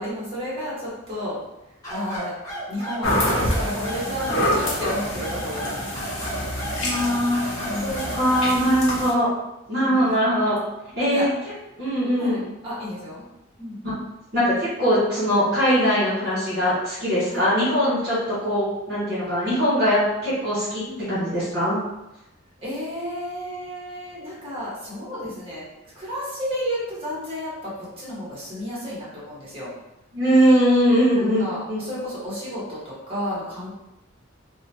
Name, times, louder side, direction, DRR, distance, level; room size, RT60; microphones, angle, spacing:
voice 1, 0.0-1.4 1.9-2.3 2.7-5.7 7.6-8.2 9.7-10.1 11.0-11.3 12.2-13.2 13.6-13.8 17.3-17.5 20.8-21.3 22.6-25.7 25.9-29.7 31.1-33.7, equal, 30° right, -7 dB, 1.2 m, -32 dB
sound 1, 1.8-8.6, right 1 dB, 15° left, 1.2 m, -33 dB
sound 2, 3.0-9.1, left 1 dB, 70° left, 0.8 m, -27 dB
voice 2, 6.8-9.3 9.7-10.6 11.0-11.3 11.8-12.4 13.8-13.9 14.3-20.8 21.1-21.8 30.1-31.4 31.7-31.8, equal, 55° right, -11 dB, 1.5 m, -21 dB
2.9 x 2.1 x 2.8 m, 0.92 s
head